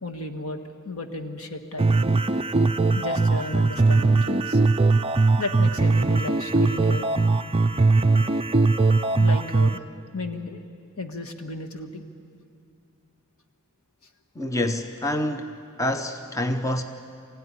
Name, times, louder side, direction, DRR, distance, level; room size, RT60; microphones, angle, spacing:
voice 1, 0.0-0.6 0.8-1.9 2.9-4.6 5.4-7.1 9.2-9.8 10.1-12.1, left 2 dB, 70° left, 1.6 m, -34 dB
sound 1, 1.8-9.8, right 3 dB, 25° right, 0.4 m, -20 dB
voice 2, 14.3-16.8, left 1 dB, 15° left, 0.8 m, -27 dB
23.5 x 16.0 x 9.9 m
head